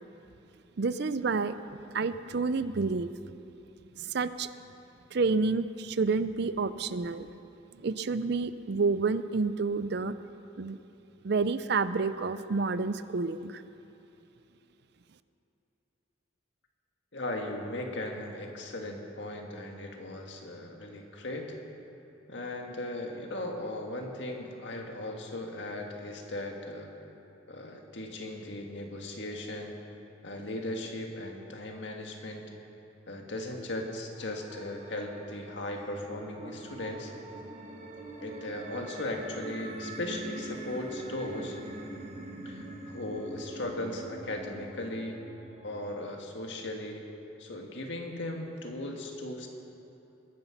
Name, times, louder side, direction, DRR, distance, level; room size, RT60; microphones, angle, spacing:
voice 1, 0.8-3.1 4.0-4.5 5.1-7.3 7.7-10.1 10.6-10.8 11.2-13.6, right 4 dB, 60° right, 13 dB, 0.5 m, -29 dB
voice 2, 17.1-21.6 22.3-26.9 27.5-29.8 30.2-32.5 33.1-37.1 38.2-41.6 42.5-45.2 45.6-47.0 47.4-49.5, left 1 dB, 65° left, 2 dB, 1.8 m, -37 dB
sound 1, 34.2-46.2, right 1 dB, 35° right, 1.3 m, -43 dB
21.5 x 9.9 x 5.9 m, 3.0 s
head